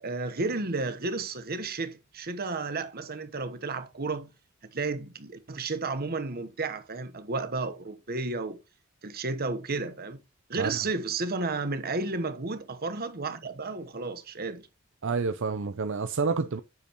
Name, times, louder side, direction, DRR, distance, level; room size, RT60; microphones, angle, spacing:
voice 1, 0.0-4.3 4.7-8.6 9.0-10.2 10.5-14.7, right 3 dB, 45° right, 1.2 m, -32 dB
voice 2, 15.0-16.6, right 4 dB, 65° right, 0.6 m, -29 dB
8.5 x 6.6 x 3.0 m
head